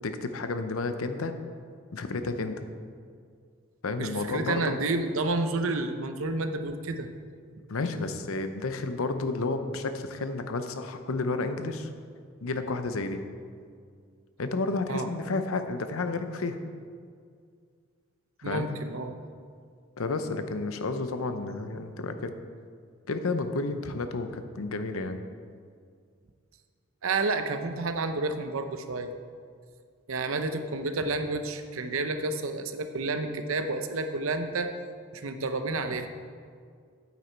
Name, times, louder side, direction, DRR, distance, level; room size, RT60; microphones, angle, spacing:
voice 1, 0.0-1.3 1.9-2.6 3.8-4.8 7.7-11.9 12.4-13.2 14.4-16.6 18.4-18.7 20.0-22.3 23.1-25.2, left 3 dB, 75° left, 8 dB, 0.7 m, -31 dB
voice 2, 4.0-7.1 14.9-15.1 18.4-19.1 27.0-29.1 30.1-34.7 35.1-36.1, right 3 dB, 70° right, 8 dB, 0.7 m, -30 dB
9.0 x 8.2 x 4.5 m, 2.1 s
head